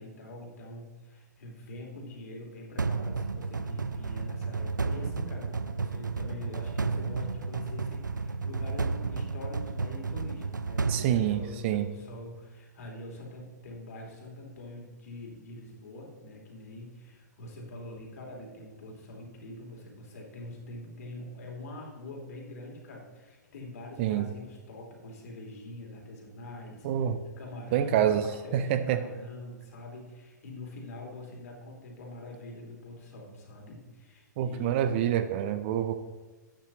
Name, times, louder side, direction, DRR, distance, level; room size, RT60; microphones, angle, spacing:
voice 1, 0.0-27.1 27.4-28.0 28.2-34.8, left 1 dB, 55° left, -1 dB, 3.2 m, -44 dB
sound 1, 2.8-12.0, right 4 dB, 80° right, 0.5 m, -32 dB
voice 2, 10.9-11.9 24.0-24.3 26.8-27.2 27.7-28.3 28.5-29.0 34.4-35.9, right 10 dB, 40° right, 11 dB, 0.6 m, -27 dB
12.0 x 9.0 x 3.0 m, 1.3 s
figure-of-eight pair, 115°, 10 cm